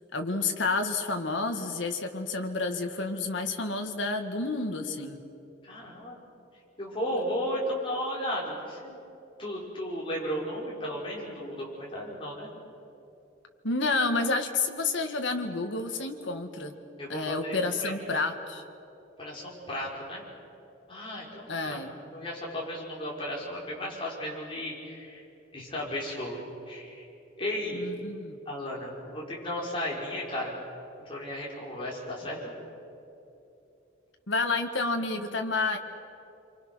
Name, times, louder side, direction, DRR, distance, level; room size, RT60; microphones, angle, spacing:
voice 1, 0.1-5.2 13.6-16.7 17.1-18.6 21.5-21.9 27.7-28.4 34.3-35.8, left 3 dB, 85° left, 5 dB, 1.8 m, -30 dB
voice 2, 5.6-6.2 6.8-9.0 9.4-12.5 17.0-17.9 19.2-20.2 20.9-21.8 22.1-25.2 25.5-27.1 27.4-27.9 28.5-30.6 31.1-32.5, equal, 30° left, -4 dB, 5.6 m, -34 dB
28.0 x 24.5 x 6.3 m, 2.8 s
head